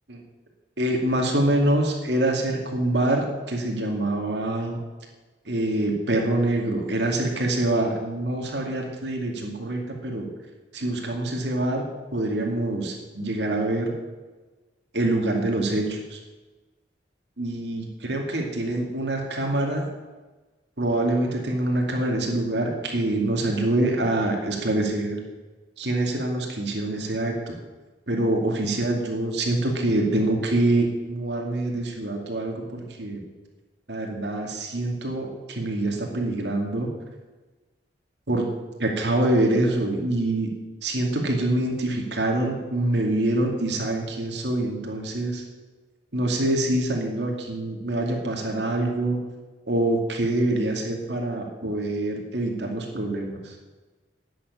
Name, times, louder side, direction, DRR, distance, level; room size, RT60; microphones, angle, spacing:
voice 1, 0.8-4.8 5.5-10.3 10.7-11.8 12.1-13.9 14.9-16.2 17.4-19.9 20.8-25.2 25.8-27.5 28.1-33.2 33.9-36.9 38.3-38.4 38.8-40.5 40.8-45.4 46.1-49.2 49.7-53.5, right 1 dB, 70° right, 1 dB, 2.4 m, -25 dB
11.0 x 7.7 x 9.7 m, 1.2 s
head